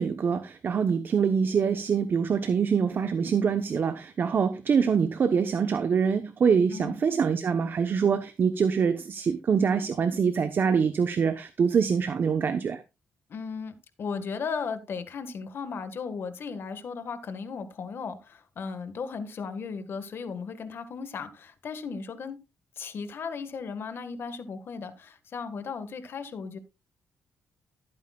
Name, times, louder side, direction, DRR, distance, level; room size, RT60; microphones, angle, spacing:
voice 1, 0.0-12.8, right 6 dB, 55° right, 1.0 m, -25 dB
voice 2, 6.7-7.0 13.3-22.4 22.8-26.6, left 5 dB, 60° left, 1.7 m, -36 dB
15.5 x 8.8 x 2.4 m
cardioid pair, 85°, 4 cm